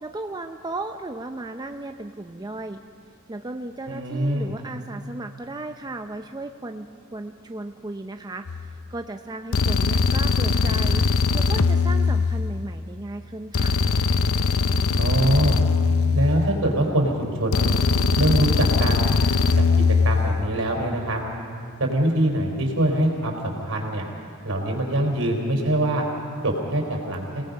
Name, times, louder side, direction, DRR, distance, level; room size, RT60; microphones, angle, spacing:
voice 1, 0.0-2.8 3.3-6.9 7.1-8.6 8.9-11.0 11.3-13.8, right 2 dB, 20° right, 5 dB, 0.5 m, -35 dB
voice 2, 3.9-4.5 15.0-15.6 16.1-17.8 18.2-19.2 19.6-19.7 20.0-21.2 21.8-24.0 24.4-26.0 26.4-27.4, right 1 dB, 70° right, 1 dB, 4.3 m, -23 dB
sound 1, 8.5-8.8 9.5-12.8 13.5-16.8 17.5-20.5, left 4 dB, 75° left, 0.6 m, -21 dB
29.0 x 19.0 x 5.4 m, 2.5 s
head